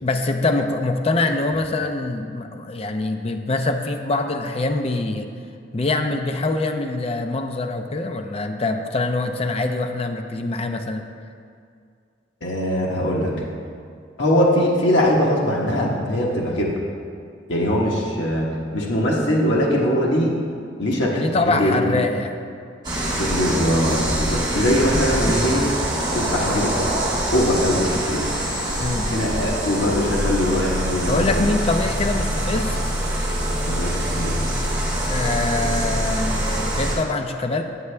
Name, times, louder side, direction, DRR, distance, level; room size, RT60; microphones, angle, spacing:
voice 1, 0.0-5.3 5.7-11.0 21.1-22.3 28.8-29.1 31.1-32.8 35.1-37.6, left 2 dB, 35° left, 5 dB, 0.5 m, -24 dB
voice 2, 12.4-13.3 14.2-16.7 17.5-20.5 20.8-21.9 23.1-25.7 26.1-27.0 27.3-28.2 29.0-31.4 33.7-34.3, equal, 80° left, -3 dB, 1.1 m, -21 dB
sound 1, 22.8-37.0, right 1 dB, 25° right, 1.6 m, -24 dB
9.6 x 7.0 x 3.3 m, 2.2 s
head